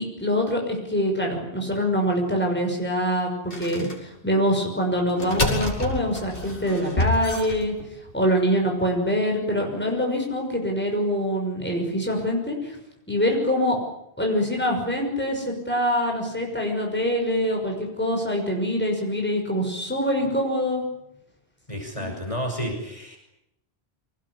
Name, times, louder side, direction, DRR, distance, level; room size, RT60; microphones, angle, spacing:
voice 1, 0.0-7.7 8.1-12.8 13.1-13.8 14.2-20.8, equal, 10° left, 0 dB, 6.1 m, -24 dB
sound 1, 3.5-3.9 5.1-8.1, left 1 dB, 60° left, 5.6 m, -27 dB
voice 2, 21.7-23.2, equal, 30° left, 1 dB, 6.2 m, -31 dB
25.5 x 19.5 x 10.0 m, 0.82 s
omnidirectional pair, 1.1 m